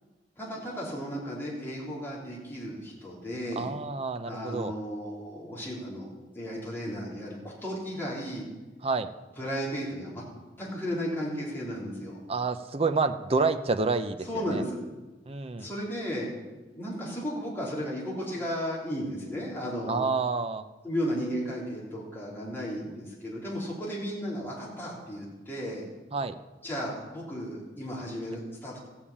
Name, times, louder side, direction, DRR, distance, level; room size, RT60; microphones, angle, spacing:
voice 1, 0.4-3.7 4.2-6.1 6.3-8.4 9.4-10.2 10.6-12.2 14.2-14.8 15.6-16.5 16.7-20.0 20.8-25.9 26.6-28.8, equal, 15° left, -6 dB, 3.7 m, -34 dB
voice 2, 3.6-4.7 8.8-9.1 12.3-14.6 15.3-15.7 19.9-20.6 26.1-26.4, right 4 dB, 35° right, 8 dB, 0.7 m, -28 dB
15.0 x 7.2 x 8.6 m, 1.2 s
head